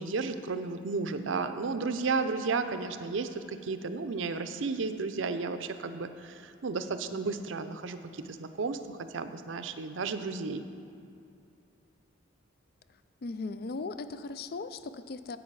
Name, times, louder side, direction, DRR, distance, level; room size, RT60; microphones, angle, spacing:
voice 1, 0.0-10.7, right 4 dB, 70° right, 10 dB, 0.5 m, -33 dB
voice 2, 13.2-15.4, left 3 dB, 50° left, 12 dB, 0.4 m, -38 dB
9.9 x 8.2 x 4.7 m, 2.5 s
head